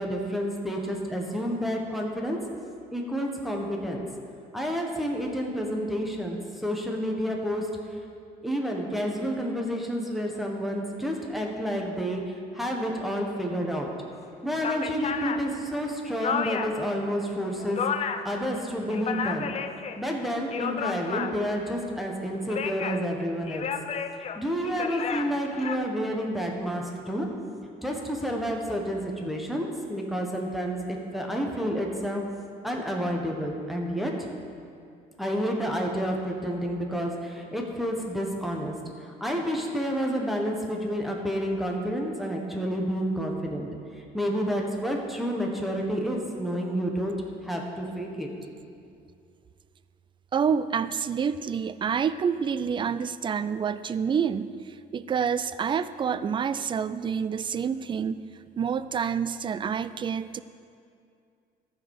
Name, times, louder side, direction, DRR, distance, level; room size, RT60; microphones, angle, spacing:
voice 1, 0.0-2.4 2.9-4.1 4.5-7.7 8.4-13.9 14.4-17.8 18.2-19.5 20.0-23.7 24.3-27.3 27.8-32.2 32.6-34.3 35.2-38.7 39.0-43.7 44.1-47.2 47.4-48.3, equal, ahead, 0 dB, 1.4 m, -29 dB
sound 1, 14.1-14.2 14.5-16.9 17.3-18.4 18.7-20.0 20.3-21.6 22.3-23.1 23.5-25.8, left 6 dB, 40° left, 0.6 m, -32 dB
voice 2, 50.3-54.5 54.9-58.2 58.6-60.4, right 7 dB, 30° right, 14 dB, 0.4 m, -28 dB
14.0 x 4.9 x 6.6 m, 2.4 s
cardioid pair, 110°, 17 cm